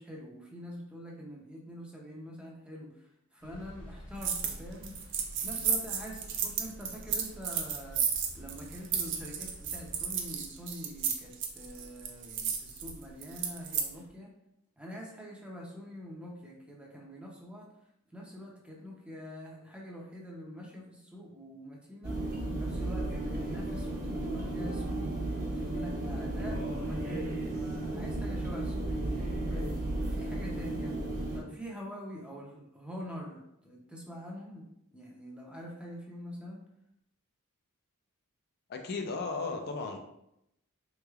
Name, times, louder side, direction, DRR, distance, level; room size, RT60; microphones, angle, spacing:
voice 1, 0.0-5.0 5.4-14.3 14.8-17.7 18.1-22.2 22.6-25.2 25.5-29.0 29.5-29.7 30.1-30.9 31.3-34.7 34.9-36.6, equal, 5° right, -3 dB, 0.6 m, -45 dB
sound 1, 3.4-10.4, equal, 70° left, 1.3 m, -51 dB
sound 2, 4.2-4.6 4.8-13.9, right 7 dB, 55° right, 0.5 m, -33 dB
sound 3, 22.0-31.4, right 2 dB, 40° right, 0.9 m, -34 dB
voice 2, 38.7-40.0, left 3 dB, 45° left, 4 dB, 0.4 m, -35 dB
3.8 x 3.1 x 2.3 m, 0.81 s
head